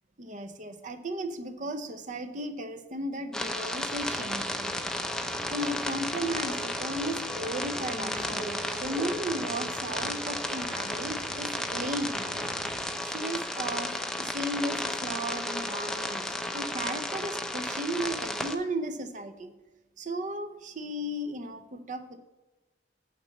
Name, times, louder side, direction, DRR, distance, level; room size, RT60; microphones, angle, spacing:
voice 1, 0.2-5.0 5.5-12.4 13.0-13.9 14.2-19.5 20.0-22.2, right 1 dB, 45° right, 9 dB, 0.7 m, -35 dB
sound 1, 3.3-18.6, left 1 dB, 5° left, 0.5 m, -33 dB
sound 2, 3.9-12.9, right 1 dB, 25° right, 2.7 m, -43 dB
8.7 x 4.0 x 6.8 m, 1.1 s
head